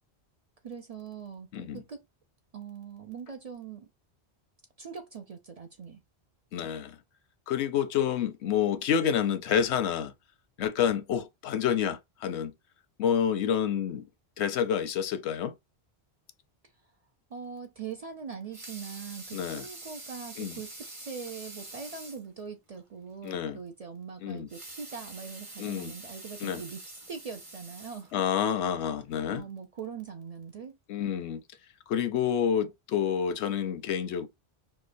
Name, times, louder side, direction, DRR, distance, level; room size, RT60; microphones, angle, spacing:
voice 1, 0.6-2.0 2.5-3.9 4.8-6.0 17.3-28.1 29.3-30.8, right 6 dB, 50° right, 0.5 m, -42 dB
voice 2, 6.5-7.0 7.5-10.1 10.6-12.5 13.0-14.1 14.4-15.5 19.3-19.7 20.4-20.6 23.2-23.6 24.2-24.5 25.6-25.9 26.4-26.6 28.1-29.5 30.9-31.4 31.9-34.3, left 8 dB, 90° left, 0.9 m, -28 dB
Water tap faucet / Sink (filling or washing) / Liquid, 18.5-22.3 22.7-22.8 23.2-23.3 24.4-28.5 29.1-29.2, right 2 dB, 30° right, 0.9 m, -45 dB
4.7 x 2.2 x 2.5 m
omnidirectional pair, 1.1 m